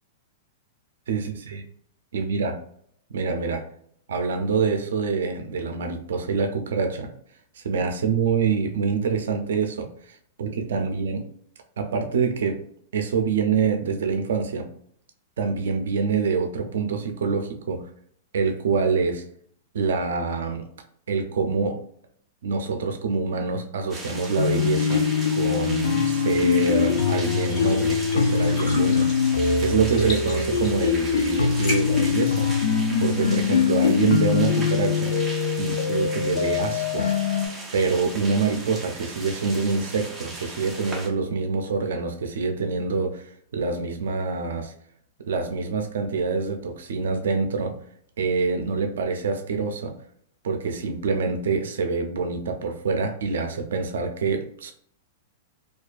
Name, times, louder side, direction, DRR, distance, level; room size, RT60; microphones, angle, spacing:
voice 1, 1.1-1.6 2.1-2.6 3.1-3.6 4.1-7.1 7.5-11.3 11.8-12.6 12.9-14.7 15.4-17.9 18.3-19.2 19.7-20.7 21.1-21.8 22.4-25.0 25.3-29.1 29.6-32.5 33.0-35.1 35.6-37.1 37.7-44.7 45.2-47.8 48.2-49.9 50.4-54.7, right 5 dB, 85° right, 6 dB, 0.3 m, -26 dB
sound 1, 23.9-41.1, right 2 dB, 10° right, 0.4 m, -38 dB
sound 2, 24.4-37.5, left 6 dB, 90° left, 0.4 m, -23 dB
sound 3, 24.8-33.3, equal, 35° left, 1.2 m, -40 dB
2.3 x 2.2 x 2.4 m, 0.64 s
supercardioid pair, 170°, 0 cm